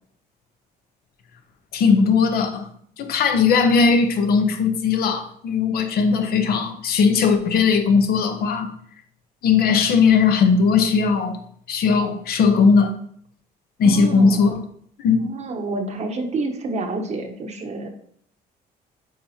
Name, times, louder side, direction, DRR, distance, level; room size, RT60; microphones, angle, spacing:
voice 1, 1.7-2.7 3.0-8.7 9.4-11.4 11.7-12.9 13.8-14.6 15.0-15.3, left 5 dB, 65° left, 0.8 m, -18 dB
voice 2, 13.8-14.6 15.2-17.9, right 2 dB, 40° right, 1.0 m, -29 dB
8.4 x 4.4 x 2.8 m
cardioid pair, 110°, 17 cm